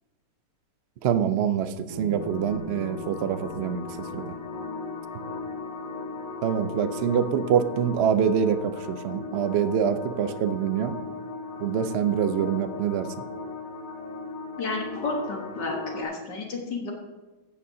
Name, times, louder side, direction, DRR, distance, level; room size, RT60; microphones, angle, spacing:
voice 1, 1.0-3.8 4.1-4.3 6.4-11.0 11.6-13.1, right 8 dB, 75° right, 11 dB, 0.6 m, -25 dB
Bass guitar, 1.9-6.1, left 1 dB, 35° right, 3.7 m, -42 dB
sound 1, 2.2-16.0, left 3 dB, 50° left, 0.6 m, -37 dB
voice 2, 14.6-16.9, left 3 dB, 75° left, 1 dB, 2.0 m, -31 dB
14.0 x 9.3 x 2.7 m, 1.2 s
omnidirectional pair, 1.9 m